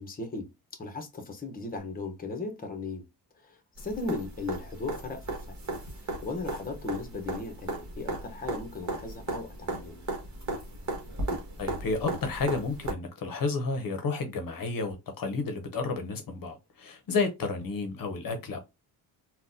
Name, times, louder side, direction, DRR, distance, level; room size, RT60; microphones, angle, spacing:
voice 1, 0.0-3.0 3.3-5.6 6.0-10.0, left 3 dB, 20° left, 0.8 m, -37 dB
sound 1, 3.8-12.9 14.9-15.0, right 2 dB, 40° right, 1.3 m, -36 dB
voice 2, 11.6-18.6, left 4 dB, 55° left, 0.8 m, -31 dB
3.8 x 2.3 x 2.6 m
cardioid pair, 115°, 41 cm